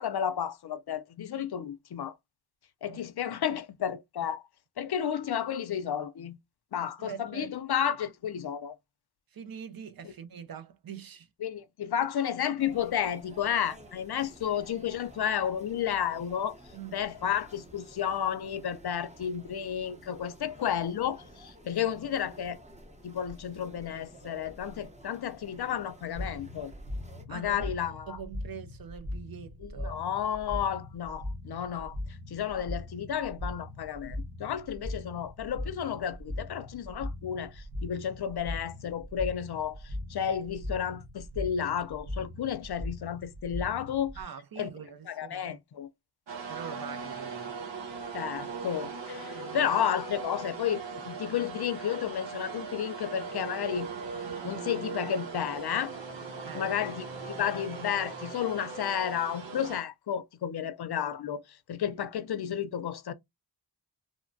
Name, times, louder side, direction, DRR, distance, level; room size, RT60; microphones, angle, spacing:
voice 1, 0.0-2.1 2.8-4.4 4.8-6.4 6.7-8.7 11.4-16.6 16.9-22.6 23.0-26.7 27.3-28.2 29.6-31.9 32.3-44.1 44.6-44.7 45.1-45.9 48.1-53.9 54.4-55.9 56.5-61.4 61.7-63.1, left 9 dB, 65° left, 0.5 m, -32 dB
voice 2, 7.0-7.5 9.3-11.3 16.7-17.0 27.3-27.7 28.1-30.0 44.2-45.6 46.5-47.6 49.3-49.7 56.4-56.8, right 7 dB, 55° right, 0.5 m, -43 dB
sound 1, 12.6-27.2, right 1 dB, 15° right, 0.7 m, -52 dB
sound 2, 26.1-44.2, left 1 dB, 70° right, 1.2 m, -40 dB
sound 3, 46.3-59.8, right 5 dB, 90° right, 1.0 m, -39 dB
3.1 x 2.1 x 2.5 m
wide cardioid pair, 60°, 43 cm